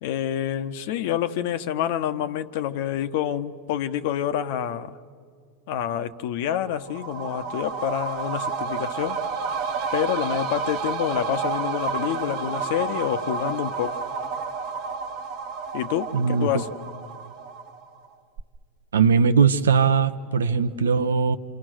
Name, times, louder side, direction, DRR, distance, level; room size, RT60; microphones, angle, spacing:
voice 1, 0.0-5.0 5.7-9.2 9.9-14.0 15.7-16.7, left 10 dB, 60° left, 11 dB, 1.2 m, -27 dB
sound 1, 6.6-18.1 18.4-18.5, right 5 dB, 55° right, 1.6 m, -30 dB
voice 2, 16.1-16.5 18.9-21.4, right 6 dB, 85° right, 11 dB, 1.0 m, -20 dB
28.0 x 27.5 x 6.4 m, 2.1 s
hypercardioid pair, 95°, 0 cm